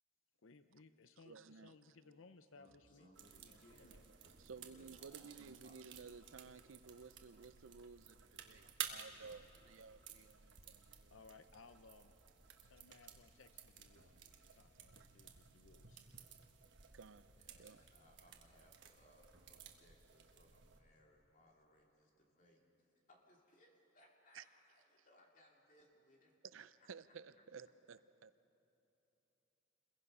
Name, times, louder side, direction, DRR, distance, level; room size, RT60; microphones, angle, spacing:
voice 1, 0.4-4.0 10.7-10.8 11.1-12.2 12.6-14.3 14.5-16.0, left 4 dB, 75° left, 0.7 m, -63 dB
voice 2, 1.2-1.7 4.4-11.1 16.9-17.3 17.6-17.8 24.3-24.4 26.4-28.3, right 5 dB, 75° right, 0.6 m, -55 dB
voice 3, 2.6-3.9 4.5-5.8 17.4-26.6 27.4-27.5, left 1 dB, 40° left, 2.9 m, -68 dB
sound 1, 2.7-19.4, equal, 10° left, 6.5 m, -77 dB
sound 2, 3.1-20.8, right 8 dB, 60° right, 1.3 m, -55 dB
28.5 x 21.5 x 5.6 m
head